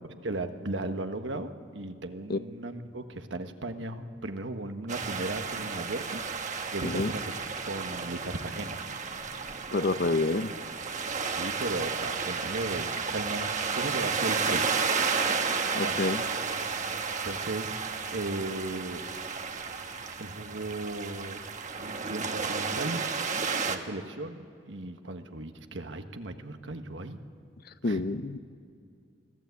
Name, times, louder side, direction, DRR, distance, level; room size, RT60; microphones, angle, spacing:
voice 1, 0.2-6.2 6.5-7.3 7.6-8.8 11.3-14.7 15.8-16.0 17.2-17.8 18.1-19.0 20.2-21.4 21.8-23.0 23.7-27.2 27.8-28.0, right 2 dB, 80° right, 7 dB, 1.4 m, -36 dB
sound 1, 4.9-23.8, right 5 dB, 40° right, 1.3 m, -32 dB
voice 2, 9.7-10.5 15.7-16.2 27.8-28.4, left 3 dB, 55° left, 13 dB, 0.7 m, -28 dB
24.5 x 15.5 x 8.3 m, 2.4 s
head